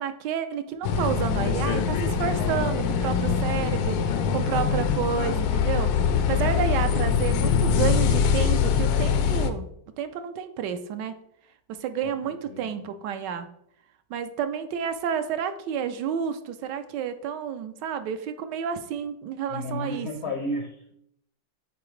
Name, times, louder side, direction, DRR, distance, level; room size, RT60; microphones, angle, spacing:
voice 1, 0.0-9.7 10.0-11.2 11.7-13.5 14.1-20.3, right 8 dB, 75° right, 10 dB, 1.2 m, -30 dB
sound 1, 0.8-9.5, left 6 dB, 80° left, 1.3 m, -23 dB
voice 2, 12.2-12.6 19.5-20.9, left 1 dB, 60° left, 2 dB, 0.7 m, -32 dB
8.6 x 4.2 x 3.1 m, 0.74 s
omnidirectional pair, 2.0 m